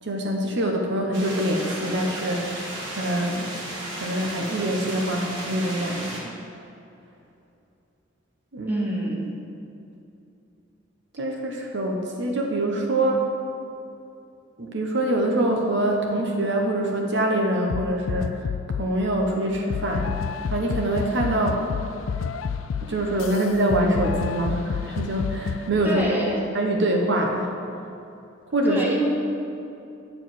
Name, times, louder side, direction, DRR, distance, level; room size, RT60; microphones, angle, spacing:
voice 1, 0.0-3.6 3.9-6.1 8.5-8.8 11.2-13.3 14.6-18.5 18.8-21.6 22.8-26.0 26.5-27.5 28.5-28.8, right 1 dB, 65° right, 1 dB, 1.0 m, -25 dB
sound 1, 1.1-6.2, right 1 dB, 85° right, 2.2 m, -34 dB
voice 2, 8.7-9.3 25.8-26.4 28.7-29.1, right 1 dB, 10° right, -4 dB, 1.6 m, -26 dB
sound 2, 17.7-19.0 19.7-25.7, left 6 dB, 80° left, 0.3 m, -30 dB
10.0 x 4.7 x 7.5 m, 2.7 s
head